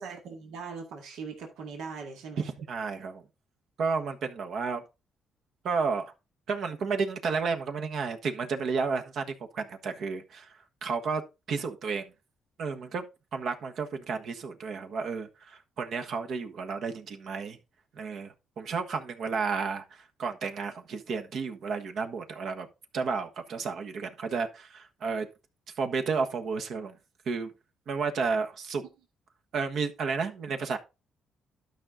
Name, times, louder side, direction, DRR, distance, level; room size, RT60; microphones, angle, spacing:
voice 1, 0.0-2.5, right 5 dB, 85° right, 1.9 m, -40 dB
voice 2, 2.4-3.2 3.8-4.8 5.6-6.1 6.5-11.2 11.5-12.1 12.6-13.0 13.3-17.6 17.9-22.7 22.9-25.3 25.8-27.0 27.2-27.5 27.9-28.8 29.5-30.8, right 5 dB, 65° right, 1.3 m, -32 dB
12.0 x 5.3 x 3.7 m
cardioid pair, 90°, 0 cm